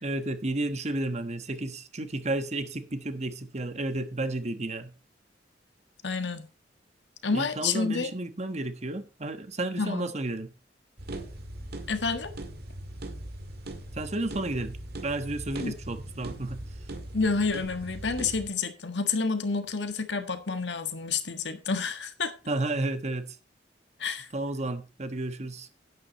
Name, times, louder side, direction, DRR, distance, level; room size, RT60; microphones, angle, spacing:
voice 1, 0.0-4.9 7.3-10.5 13.9-14.8 15.0-16.6 22.5-23.2 24.3-25.7, right 2 dB, 40° right, 1.3 m, -32 dB
voice 2, 6.0-6.5 7.2-8.1 9.8-10.1 11.9-12.3 15.6-15.7 17.1-22.3 24.0-24.3, left 4 dB, 85° left, 1.5 m, -29 dB
sound 1, 11.0-18.5, right 1 dB, 60° right, 2.0 m, -40 dB
11.0 x 9.6 x 4.2 m
head